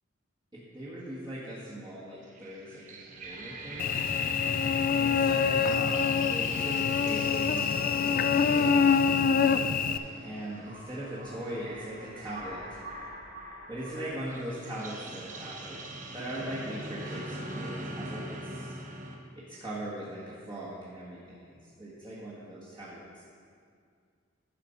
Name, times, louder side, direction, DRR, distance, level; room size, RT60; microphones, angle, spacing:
voice 1, 0.7-3.9 4.9-9.0 10.2-12.8 13.7-15.8 16.1-18.8 19.3-23.2, right 1 dB, 20° right, -9 dB, 1.5 m, -40 dB
sound 1, 2.2-19.2, right 1 dB, 40° right, 1.0 m, -43 dB
Cricket / Buzz, 3.8-10.0, left 6 dB, 45° left, 0.3 m, -25 dB
12.0 x 5.7 x 5.1 m, 2.2 s
head